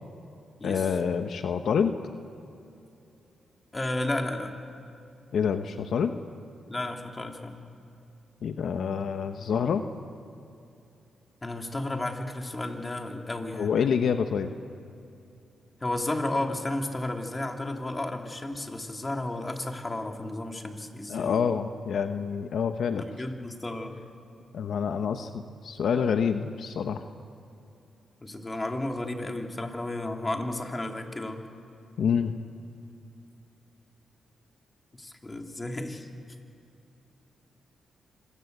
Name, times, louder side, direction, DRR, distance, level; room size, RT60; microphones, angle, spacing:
voice 1, 0.6-1.9 5.3-6.1 8.4-9.8 13.5-14.5 21.1-23.3 24.5-27.1 32.0-32.3, left 7 dB, 70° left, 8 dB, 1.0 m, -27 dB
voice 2, 3.7-4.5 6.7-7.6 11.4-13.7 15.8-21.4 23.0-24.0 28.2-31.4 34.9-36.1, left 2 dB, 25° left, 3 dB, 3.0 m, -33 dB
26.5 x 21.0 x 8.1 m, 2.7 s
cardioid pair, 70°, 0 cm